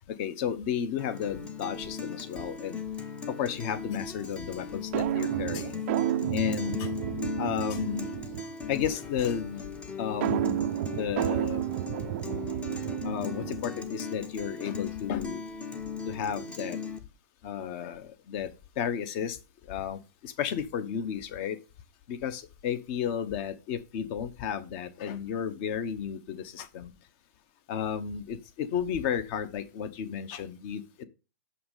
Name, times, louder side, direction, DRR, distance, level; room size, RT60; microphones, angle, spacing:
voice 1, 0.1-2.8 3.3-5.8 6.3-6.9 7.4-9.7 10.0-11.6 13.0-15.4 16.0-16.8 17.4-21.6 22.1-26.9 27.7-31.0, left 8 dB, 35° left, 0.9 m, -33 dB
Guitar, 1.0-17.0, left 6 dB, 10° left, 0.7 m, -38 dB
sound 1, 4.9-8.7 10.2-13.8, right 14 dB, 40° right, 0.4 m, -31 dB
6.5 x 5.7 x 5.6 m
hypercardioid pair, 155°, 11 cm